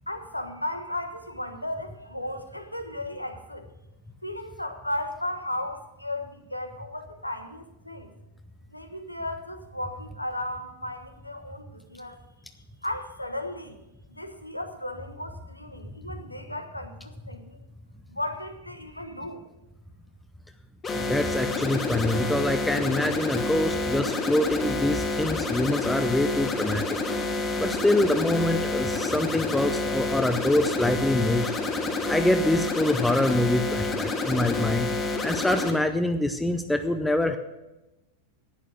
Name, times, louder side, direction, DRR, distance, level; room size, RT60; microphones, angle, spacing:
voice 1, 0.1-3.7 4.2-8.1 8.7-12.2 12.8-13.8 14.1-17.6 18.1-19.4, left 1 dB, 85° left, 7 dB, 1.2 m, -35 dB
sound 1, 20.8-35.7, left 3 dB, 20° left, 1.9 m, -28 dB
voice 2, 21.0-27.0 27.6-31.5 32.1-34.9 35.2-37.4, left 1 dB, 5° left, 8 dB, 0.7 m, -25 dB
11.5 x 10.0 x 6.2 m, 0.98 s
figure-of-eight pair, 90°, 0 cm